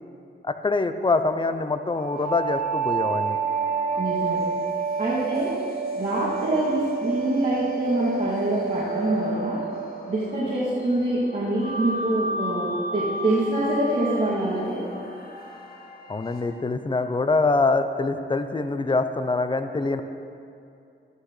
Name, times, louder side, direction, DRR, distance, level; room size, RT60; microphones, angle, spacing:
voice 1, 0.4-3.4 16.1-20.0, left 3 dB, 25° left, 9 dB, 0.6 m, -24 dB
sound 1, 2.0-10.7 11.6-16.4, right 4 dB, 50° left, 1.6 m, -30 dB
voice 2, 4.0-4.4 5.0-5.5 6.0-9.6 10.1-14.8, right 1 dB, 45° right, -10 dB, 2.4 m, -25 dB
13.5 x 11.5 x 3.3 m, 2.6 s
cardioid pair, 85°, 20 cm